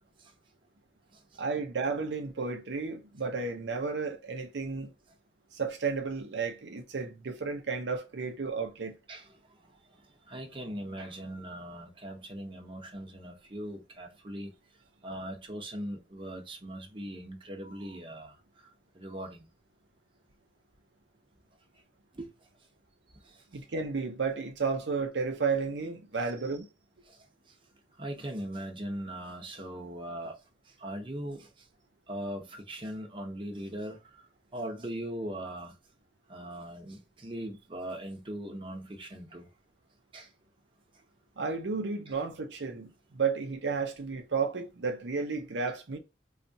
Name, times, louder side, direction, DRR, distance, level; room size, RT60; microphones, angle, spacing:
voice 1, 1.4-4.9 5.5-9.0 23.5-26.7 41.4-46.0, right 5 dB, 80° right, 0.6 m, -32 dB
voice 2, 10.3-14.5 15.0-18.4 18.9-19.4 22.1-22.3 27.1-27.2 28.0-30.4 30.8-31.5 32.1-34.0 34.5-35.7 36.3-39.5 40.1-40.3 42.1-42.2, right 1 dB, 30° right, 0.9 m, -40 dB
4.0 x 2.4 x 2.6 m
head